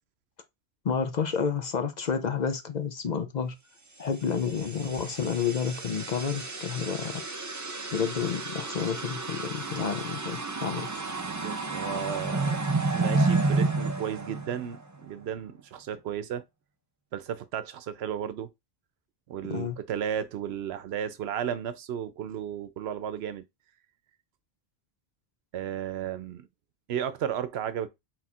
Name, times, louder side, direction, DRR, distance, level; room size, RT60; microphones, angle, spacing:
voice 1, 0.8-3.6 4.0-7.1 7.9-10.9 19.5-19.8, left 6 dB, 55° left, 0.6 m, -30 dB
star carcass, 4.3-15.0, right 3 dB, 25° right, 0.4 m, -31 dB
voice 2, 10.9-12.6 12.9-16.4 17.1-18.5 19.3-23.4 25.5-26.5 26.9-27.9, right 9 dB, 85° right, 0.8 m, -34 dB
4.1 x 2.4 x 4.1 m
omnidirectional pair, 1.0 m